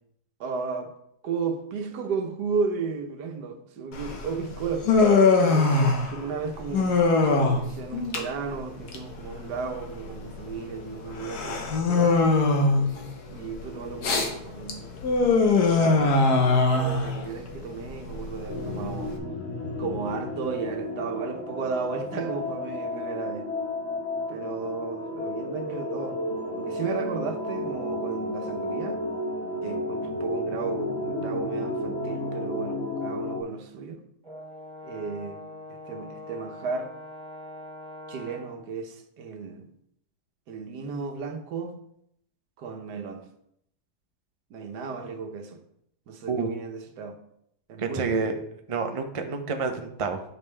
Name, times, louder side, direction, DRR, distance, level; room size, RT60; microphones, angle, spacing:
voice 1, 0.4-0.9 1.2-4.9 5.4-12.2 13.3-14.9 15.7-19.2 19.8-23.5 24.3-26.2 26.6-29.0 29.6-34.0 34.8-35.4 35.7-36.9 38.1-39.7 40.5-41.7 42.6-43.3 44.5-45.6 46.1-47.2 47.7-48.2, right 5 dB, 80° right, 1.4 m, -34 dB
Human voice, 3.9-19.2, left 3 dB, 75° left, 1.6 m, -23 dB
sound 1, 18.5-33.4, left 1 dB, 45° left, 1.3 m, -32 dB
Brass instrument, 34.2-38.6, left 1 dB, 20° right, 2.7 m, -43 dB
voice 2, 47.8-48.3 48.7-50.2, right 4 dB, 55° right, 0.3 m, -28 dB
9.2 x 5.3 x 3.3 m
omnidirectional pair, 1.8 m